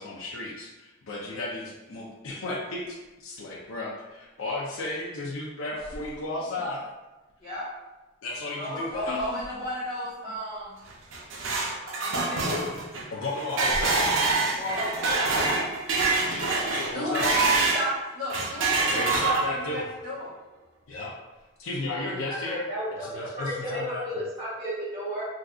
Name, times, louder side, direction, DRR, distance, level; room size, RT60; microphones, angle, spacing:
voice 1, 0.0-6.8 8.2-9.3 13.1-14.1 16.2-17.3 18.9-19.8 20.9-21.2 21.6-22.6 22.9-24.2, left 2 dB, 80° left, -3 dB, 0.5 m, -34 dB
sound 1, 2.6-3.1 5.0-5.1 5.7-6.9 7.3-7.5 8.8-10.7 11.1-11.3 12.3-12.4 13.6-15.9 16.3-16.6, equal, 25° left, 0.5 m, -42 dB
voice 2, 8.6-10.8 12.0-12.7 14.5-15.6 16.9-20.3 23.6-23.8, equal, 45° left, -13 dB, 1.1 m, -33 dB
sound 2, 10.9-17.9 18.3-19.7, right 3 dB, 65° right, 0.5 m, -26 dB
voice 3, 22.3-25.2, equal, 25° right, -13 dB, 1.0 m, -33 dB
3.6 x 2.6 x 2.3 m, 1.1 s
head